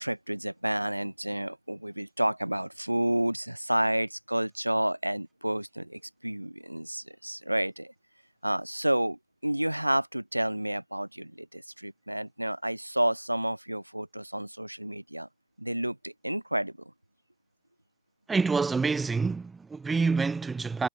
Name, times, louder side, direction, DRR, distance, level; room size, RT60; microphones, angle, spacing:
voice 1, 0.0-7.9 8.4-15.3 15.6-16.7, right 1 dB, 90° right, 0.5 m, -30 dB
voice 2, 18.3-20.9, right 4 dB, 10° right, 0.3 m, -27 dB
figure-of-eight pair, 100°, 0 cm